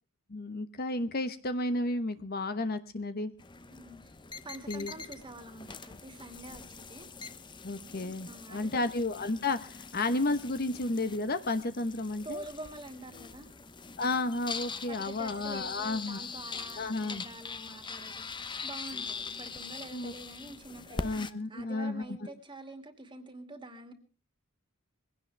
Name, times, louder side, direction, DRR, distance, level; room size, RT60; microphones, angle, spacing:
voice 1, 0.3-3.3 4.7-4.9 7.6-12.4 14.0-16.2 16.8-17.2 19.9-20.1 20.9-22.3, left 2 dB, 45° left, 10 dB, 1.0 m, -32 dB
sound 1, 3.4-21.3, left 4 dB, 20° left, 0.8 m, -43 dB
voice 2, 3.7-4.0 4.4-7.1 8.3-8.9 12.2-13.5 14.9-23.9, right 2 dB, 20° right, 7 dB, 2.4 m, -46 dB
21.5 x 17.0 x 3.4 m, 0.36 s
head